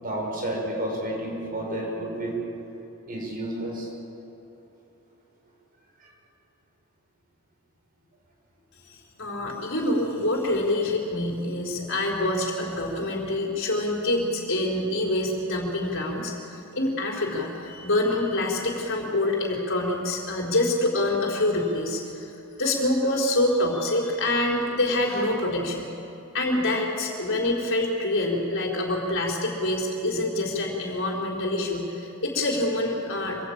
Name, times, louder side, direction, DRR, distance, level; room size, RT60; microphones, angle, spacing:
voice 1, 0.0-2.4 3.1-3.9, right 1 dB, 40° right, -1 dB, 6.4 m, -30 dB
voice 2, 8.9-22.3 22.6-25.9 26.3-33.4, left 1 dB, 60° left, -1 dB, 4.6 m, -26 dB
26.0 x 18.5 x 8.9 m, 2.8 s
head